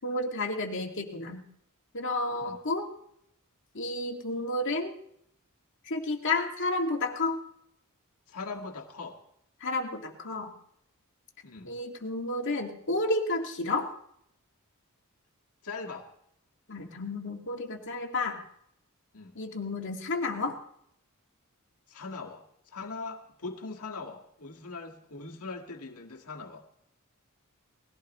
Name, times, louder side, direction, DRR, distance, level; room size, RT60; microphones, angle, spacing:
voice 1, 0.0-1.4 1.9-2.9 3.7-4.9 5.9-7.4 9.6-10.5 11.7-13.9 16.7-18.4 19.4-20.6, left 2 dB, 60° left, 2 dB, 2.0 m, -31 dB
voice 2, 8.3-9.2 11.4-11.7 15.6-16.1 19.1-19.4 21.9-26.6, left 4 dB, 90° left, 1 dB, 1.8 m, -41 dB
20.0 x 15.5 x 3.1 m, 0.70 s
head